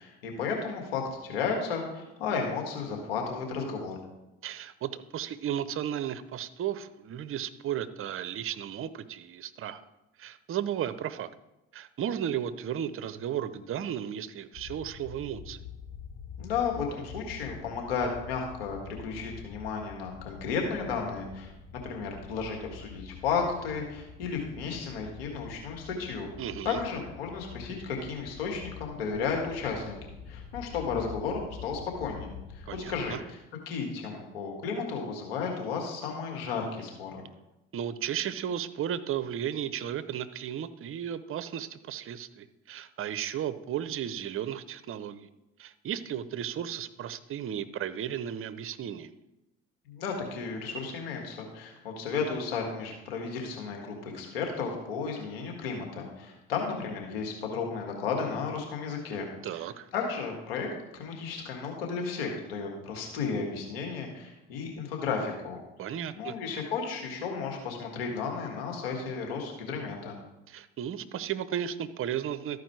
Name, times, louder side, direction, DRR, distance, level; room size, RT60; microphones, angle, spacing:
voice 1, 0.0-4.0 16.4-21.5 21.9-26.3 26.6-30.0 30.3-33.2 33.7-37.2 49.9-59.3 59.9-60.7 61.0-65.6 66.1-70.2, left 5 dB, 90° left, 1 dB, 1.9 m, -33 dB
voice 2, 4.4-9.8 10.2-11.3 11.7-15.6 26.4-26.8 32.7-33.2 37.7-45.3 45.6-49.1 59.4-59.9 65.8-66.4 70.5-72.6, right 10 dB, 45° right, 14 dB, 0.7 m, -34 dB
sound 1, 14.5-33.1, left 6 dB, 70° left, 1.9 m, -46 dB
13.0 x 4.8 x 4.7 m, 0.95 s
hypercardioid pair, 65°, 29 cm